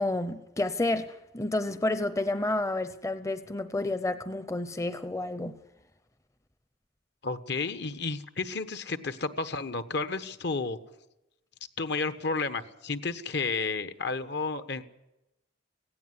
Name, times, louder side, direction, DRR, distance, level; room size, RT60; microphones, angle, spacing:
voice 1, 0.0-5.6, left 2 dB, 15° left, 0.7 m, -30 dB
voice 2, 7.2-10.8 11.8-14.8, left 4 dB, 60° left, 1.3 m, -32 dB
17.5 x 16.5 x 9.7 m
head